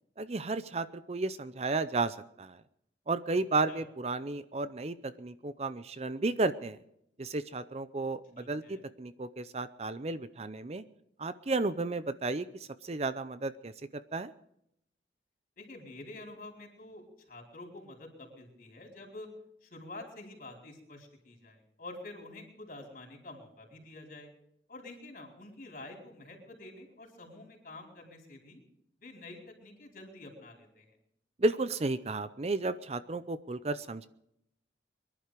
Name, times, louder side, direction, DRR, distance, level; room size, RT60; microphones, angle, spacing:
voice 1, 0.2-2.6 3.1-6.8 7.2-10.8 11.2-14.3 31.4-34.1, right 3 dB, 35° right, 13 dB, 0.5 m, -33 dB
voice 2, 8.4-8.8 15.6-19.3 19.6-24.3 24.7-28.6 29.0-31.0, left 2 dB, 50° left, 0 dB, 4.7 m, -48 dB
23.0 x 11.5 x 5.1 m, 0.76 s
head